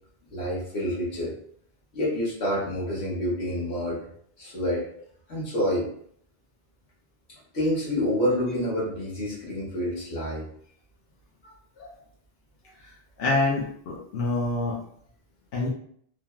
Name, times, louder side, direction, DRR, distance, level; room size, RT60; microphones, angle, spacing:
voice 1, 0.3-1.3 1.9-4.0 4.4-4.9 5.3-5.9 7.5-10.5, equal, 90° left, -5 dB, 1.5 m, -28 dB
voice 2, 13.2-14.8 15.5-15.7, left 2 dB, 70° left, -4 dB, 0.9 m, -26 dB
3.3 x 2.1 x 2.3 m, 0.63 s
omnidirectional pair, 1.1 m